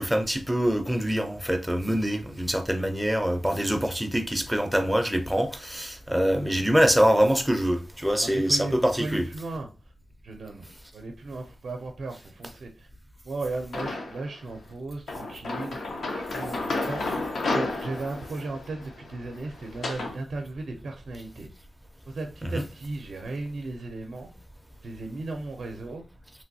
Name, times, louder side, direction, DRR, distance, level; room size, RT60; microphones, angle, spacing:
voice 1, 0.0-9.2 22.4-22.7, equal, 5° right, 0.5 m, -24 dB
voice 2, 8.2-9.7 10.2-10.7 10.9-12.9 13.2-15.9 16.3-17.1 17.5-21.5 22.1-24.3 24.8-26.0, right 3 dB, 65° right, 0.5 m, -36 dB
sound 1, 13.7-14.3 15.1-20.2, left 2 dB, 80° left, 0.6 m, -32 dB
3.1 x 2.6 x 2.6 m
wide cardioid pair, 125°, 0 cm